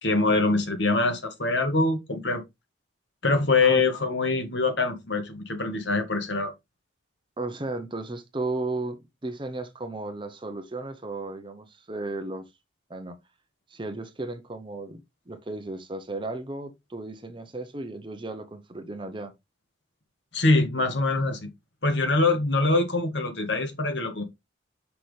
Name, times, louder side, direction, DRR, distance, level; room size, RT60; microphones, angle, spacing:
voice 1, 0.0-2.4 3.2-6.5 20.3-21.5 21.8-24.2, left 3 dB, 70° left, 1.7 m, -24 dB
voice 2, 7.4-12.5 12.9-13.2 13.7-19.3, right 2 dB, 25° right, 0.8 m, -35 dB
6.0 x 5.9 x 3.3 m
head